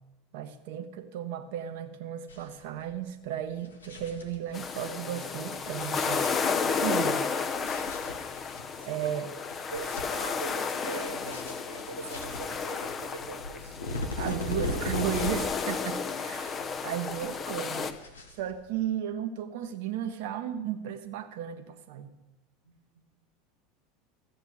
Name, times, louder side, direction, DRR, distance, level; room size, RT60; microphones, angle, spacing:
voice 1, 0.3-6.3 6.6-7.3 8.9-9.3 14.2-16.6 16.8-17.9 18.4-22.1, right 10 dB, 60° right, 7 dB, 0.9 m, -34 dB
sound 1, 2.3-2.6 2.9-3.0 3.5-4.7 5.5-6.8 7.5-8.6 9.0-9.1 9.5-10.5 10.9-15.6 15.9-16.8 17.1-18.8, left 2 dB, 85° left, 1.5 m, -38 dB
sound 2, 4.5-17.9, left 5 dB, 30° left, 1.0 m, -32 dB
voice 2, 8.8-9.1 9.7-13.8 22.7-23.1, right 4 dB, 90° right, 5 dB, 1.8 m, -42 dB
14.5 x 7.9 x 6.3 m, 1.0 s
figure-of-eight pair, 80°, 0 cm